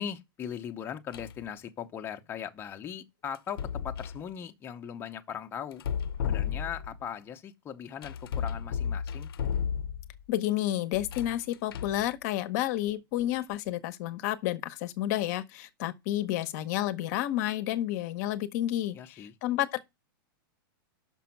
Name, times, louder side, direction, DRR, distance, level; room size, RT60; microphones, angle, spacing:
voice 1, 0.0-5.8 6.2-9.3 18.9-19.3, left 8 dB, 20° left, 0.7 m, -39 dB
sound 1, 1.1-1.5 3.4-4.2 5.7-7.0 8.0-10.2 10.9-12.1, left 8 dB, 80° left, 0.6 m, -33 dB
voice 2, 10.3-19.0 19.4-19.8, left 13 dB, 45° left, 0.8 m, -30 dB
6.1 x 5.1 x 5.8 m
supercardioid pair, 150°, 12 cm